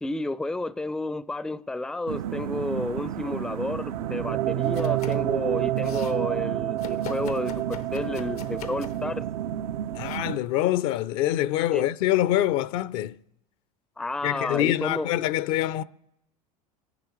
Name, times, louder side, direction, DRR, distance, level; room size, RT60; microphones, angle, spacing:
voice 1, 0.0-9.3 11.7-11.9 14.0-15.1, left 2 dB, 5° left, 0.4 m, -31 dB
sound 1, 2.1-10.4, right 13 dB, 75° right, 0.4 m, -29 dB
Domestic sounds home sounds, 4.6-5.3 5.6-6.2 6.8-9.1 10.0-10.2, left 9 dB, 90° left, 0.9 m, -42 dB
voice 2, 10.0-13.2 14.2-15.8, left 13 dB, 65° left, 0.5 m, -25 dB
26.5 x 10.5 x 3.1 m
hypercardioid pair, 85°, 19 cm